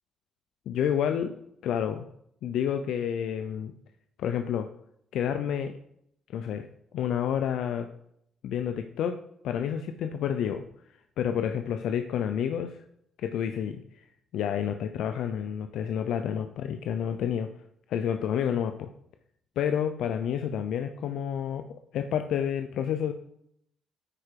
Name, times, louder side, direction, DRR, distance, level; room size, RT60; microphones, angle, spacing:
voice 1, 0.7-1.4 1.6-2.0 2.4-3.7 4.2-4.7 5.1-5.7 6.3-6.7 6.9-7.9 8.4-9.1 9.4-10.6 11.2-12.8 13.2-13.8 14.3-17.5 17.9-18.9 19.6-21.6 21.9-23.1, left 8 dB, 80° left, 7 dB, 0.6 m, -29 dB
9.9 x 4.8 x 4.6 m, 0.72 s
cardioid pair, 90°, 0 cm